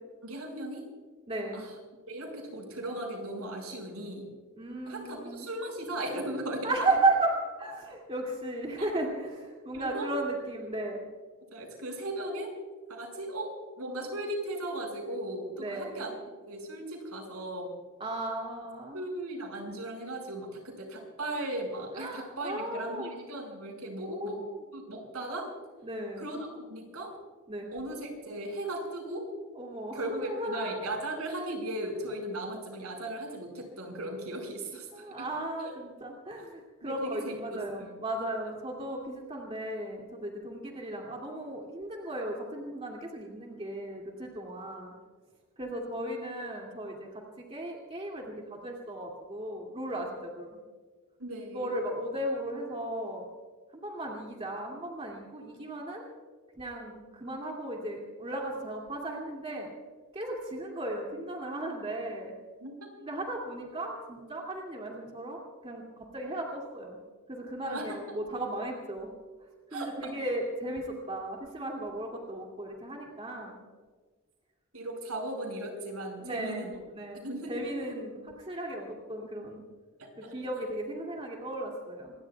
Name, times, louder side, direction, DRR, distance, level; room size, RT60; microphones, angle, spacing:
voice 1, 0.2-0.8 1.5-1.7 2.1-4.3 4.9-6.7 8.8-8.9 9.7-10.1 11.5-12.5 12.9-16.1 16.4-17.7 18.9-24.4 24.7-25.5 26.2-27.1 27.7-29.3 29.9-35.1 35.6-35.7 36.8-37.9 51.2-51.7 62.6-62.9 67.6-68.0 69.7-70.1 74.7-76.7 77.2-77.7 80.0-80.3, right 1 dB, 80° right, 2 dB, 5.8 m, -37 dB
voice 2, 1.3-1.6 4.6-5.5 6.6-11.0 15.6-16.0 18.0-19.0 21.9-23.1 24.1-24.4 25.8-26.3 27.5-27.7 29.5-30.8 34.9-44.9 45.6-50.6 51.5-53.3 53.7-56.1 56.6-59.7 60.1-62.3 63.0-65.8 66.1-67.0 67.3-69.1 69.7-73.6 76.2-76.7 76.9-79.6 80.2-82.1, right 2 dB, 25° right, -1 dB, 2.5 m, -35 dB
27.0 x 22.5 x 2.3 m, 1.5 s
head